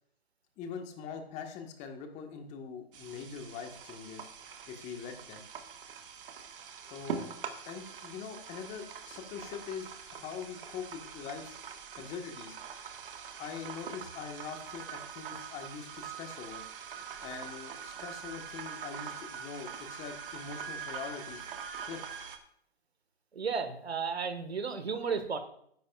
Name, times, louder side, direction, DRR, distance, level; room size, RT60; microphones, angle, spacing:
voice 1, 0.6-4.3 4.7-5.4 6.9-7.3 7.6-11.6 12.0-12.6 13.4-16.6 17.2-21.5 21.8-22.0, left 6 dB, 20° left, 5 dB, 1.5 m, -43 dB
sound 1, 2.9-22.4, right 7 dB, 60° right, 1.7 m, -44 dB
voice 2, 23.3-25.4, right 5 dB, 80° right, 9 dB, 1.7 m, -33 dB
13.5 x 10.5 x 2.4 m, 0.68 s
hypercardioid pair, 135°, 31 cm